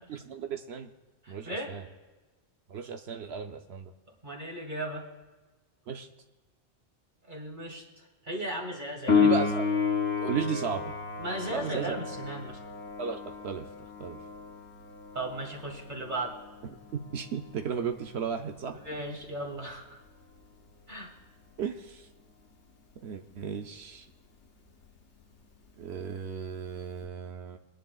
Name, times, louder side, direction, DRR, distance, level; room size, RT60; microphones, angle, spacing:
voice 1, 0.1-0.9 1.3-1.8 2.7-3.9 5.9-6.1 9.1-9.7 10.2-10.9 11.5-12.0 13.0-13.7 14.0-14.2 16.9-18.8 21.6-22.1 23.0-24.1 25.8-27.6, right 7 dB, 70° right, 6 dB, 0.9 m, -35 dB
voice 2, 1.2-1.7 4.2-5.0 7.3-9.3 11.2-12.6 15.1-16.4 18.7-20.0 20.9-21.1, right 1 dB, 45° right, -1 dB, 2.3 m, -36 dB
Piano, 9.1-19.5 27.0-27.1, left 5 dB, 85° left, 1.6 m, -32 dB
20.5 x 10.5 x 2.4 m, 1.2 s
omnidirectional pair, 1.2 m